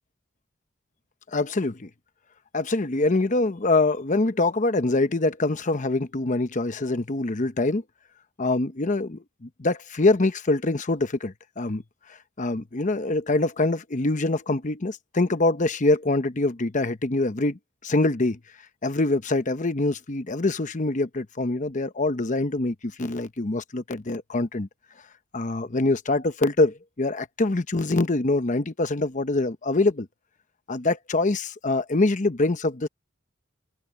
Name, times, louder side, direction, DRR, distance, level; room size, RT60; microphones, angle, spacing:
voice 1, 1.3-1.9 2.5-7.8 8.4-11.8 12.4-18.4 18.8-24.7 25.3-30.1 30.7-32.9, left 2 dB, 40° left, 0.9 m, -24 dB
head